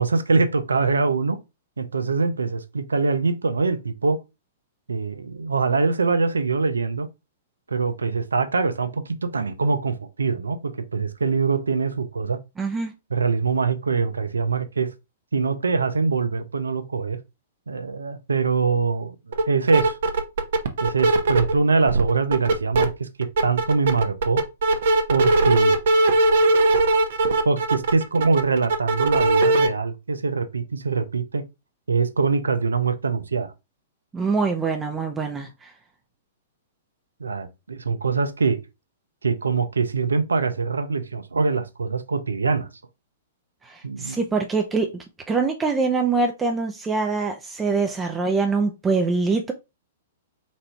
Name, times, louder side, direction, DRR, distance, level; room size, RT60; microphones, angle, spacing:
voice 1, 0.0-1.4 1.8-4.2 4.9-7.1 7.7-12.4 13.1-14.9 15.3-17.2 17.7-20.0 20.8-23.1 23.4-24.4 25.1-25.8 27.4-31.4 31.9-33.5 37.2-38.6 39.2-42.7 43.8-44.2, right 4 dB, 90° right, 0.6 m, -23 dB
voice 2, 12.6-12.9 34.1-35.7 43.6-49.5, right 4 dB, 15° right, 0.6 m, -24 dB
sound 1, 19.3-19.4 19.7-21.5 21.9-22.9 23.2-29.7, right 2 dB, 65° right, 0.9 m, -19 dB
4.2 x 2.6 x 4.4 m
hypercardioid pair, 120°, 0 cm